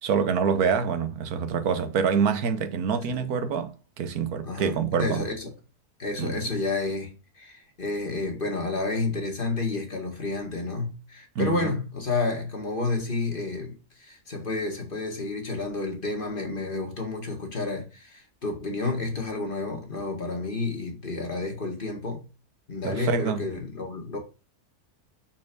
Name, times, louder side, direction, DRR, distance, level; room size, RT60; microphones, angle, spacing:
voice 1, 0.0-5.3 6.2-6.4 11.3-11.7 22.8-23.5, right 6 dB, 75° right, 1.4 m, -26 dB
voice 2, 4.4-5.5 6.0-22.2 22.7-24.2, left 3 dB, 35° left, 2.0 m, -30 dB
6.1 x 4.5 x 5.9 m
omnidirectional pair, 1.6 m